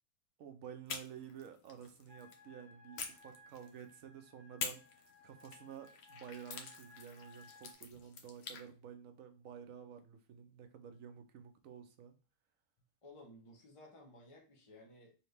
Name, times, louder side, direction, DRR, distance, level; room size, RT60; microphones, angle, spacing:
voice 1, 0.4-4.8 5.2-12.2, right 8 dB, 80° right, 1.1 m, -51 dB
sound 1, 0.9-2.4 3.0-4.0 4.6-8.6, left 5 dB, 60° left, 0.9 m, -47 dB
sound 2, 2.1-7.7, left 2 dB, 40° left, 1.3 m, -61 dB
voice 2, 13.0-15.1, left 1 dB, 25° left, 0.9 m, -57 dB
4.2 x 2.8 x 3.3 m
omnidirectional pair, 1.4 m